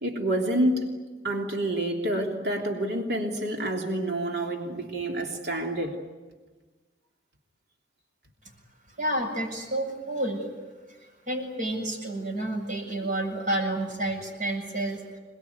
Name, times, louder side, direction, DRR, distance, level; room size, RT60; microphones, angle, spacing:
voice 1, 0.0-0.9 1.2-5.9, right 1 dB, 65° right, 1 dB, 3.2 m, -28 dB
voice 2, 9.0-10.5 11.3-15.2, right 1 dB, 45° right, 2 dB, 7.4 m, -30 dB
27.5 x 20.5 x 9.5 m, 1.3 s
head